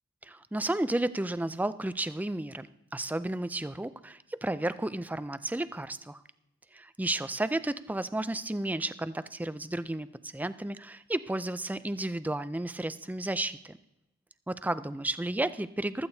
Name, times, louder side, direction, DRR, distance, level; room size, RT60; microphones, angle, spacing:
voice 1, 0.2-6.2 6.7-13.8 14.5-16.1, right 1 dB, 5° right, 13 dB, 0.4 m, -32 dB
15.5 x 13.5 x 2.7 m, 0.85 s
head